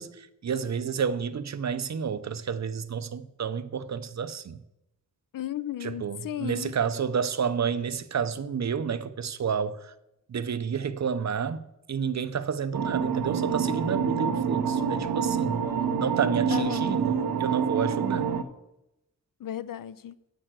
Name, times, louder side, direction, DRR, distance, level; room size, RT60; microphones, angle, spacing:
voice 1, 0.0-4.6 5.8-9.9 10.3-15.6 16.0-18.3, right 6 dB, 50° right, 0.6 m, -30 dB
voice 2, 5.3-6.7 16.5-17.0 19.4-20.2, left 11 dB, 70° left, 0.5 m, -34 dB
sound 1, 12.7-18.4, right 6 dB, 90° right, 0.8 m, -27 dB
7.7 x 6.7 x 7.5 m
wide cardioid pair, 120°, 35 cm